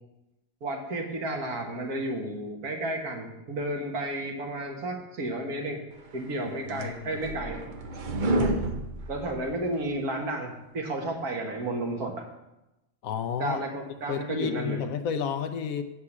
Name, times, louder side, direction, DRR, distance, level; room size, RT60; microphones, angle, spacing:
voice 1, 0.6-5.8 6.1-7.7 8.4-8.7 9.1-12.2 13.4-14.8, right 1 dB, 70° right, 1 dB, 1.9 m, -32 dB
sound 1, 6.2-9.9, right 1 dB, 50° right, 0.6 m, -31 dB
voice 2, 13.0-13.6 14.1-15.8, left 7 dB, 70° left, 8 dB, 0.9 m, -31 dB
8.0 x 5.6 x 7.2 m, 0.95 s
omnidirectional pair, 1.7 m